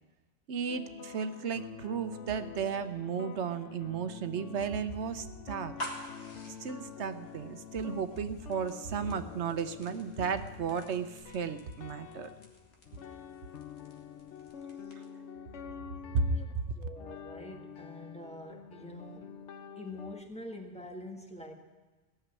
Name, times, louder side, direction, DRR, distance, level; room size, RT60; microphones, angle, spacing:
voice 1, 0.5-5.8 6.6-12.3 16.1-16.4, right 6 dB, 75° right, 10 dB, 1.1 m, -34 dB
sound 1, 0.7-20.2, left 8 dB, 90° left, 1.0 m, -47 dB
sound 2, 5.6-15.3, left 1 dB, 60° left, 2.3 m, -49 dB
voice 2, 16.8-19.4 19.8-21.5, left 1 dB, 5° left, 2 dB, 1.7 m, -45 dB
17.5 x 7.2 x 9.6 m, 1.2 s
omnidirectional pair, 1.2 m